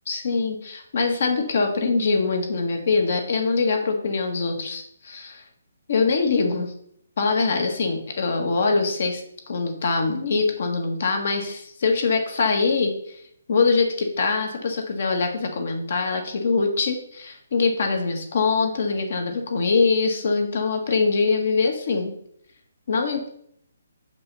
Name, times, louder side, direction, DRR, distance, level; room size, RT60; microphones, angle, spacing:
voice 1, 0.1-5.4 5.9-6.7 7.2-9.2 9.5-13.2 13.5-22.1 22.9-23.3, left 4 dB, 55° left, 4 dB, 1.5 m, -23 dB
6.7 x 5.4 x 4.1 m, 0.70 s
hypercardioid pair, 165°, 0 cm